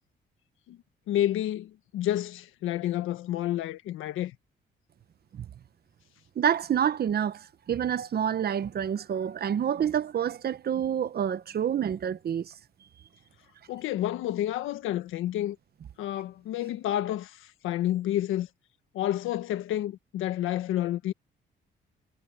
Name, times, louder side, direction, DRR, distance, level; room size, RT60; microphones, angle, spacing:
voice 1, 1.1-4.3 13.7-15.6 16.0-18.5 18.9-21.1, left 13 dB, 90° left, 1.5 m, -30 dB
voice 2, 6.4-12.5, right 9 dB, 50° right, 1.1 m, -28 dB
cardioid pair, 90°, 20 cm